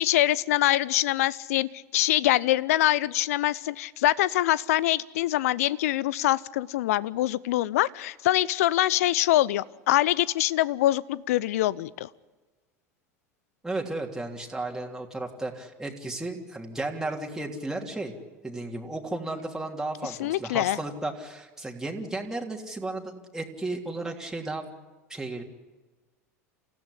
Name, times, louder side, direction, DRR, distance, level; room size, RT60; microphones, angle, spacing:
voice 1, 0.0-12.1 20.2-20.8, left 15 dB, 65° left, 21 dB, 0.7 m, -24 dB
voice 2, 13.6-18.1 18.4-24.7 25.1-25.4, right 2 dB, 5° right, 0 dB, 3.2 m, -34 dB
28.0 x 15.5 x 10.0 m, 1.2 s
hypercardioid pair, 80°, 8 cm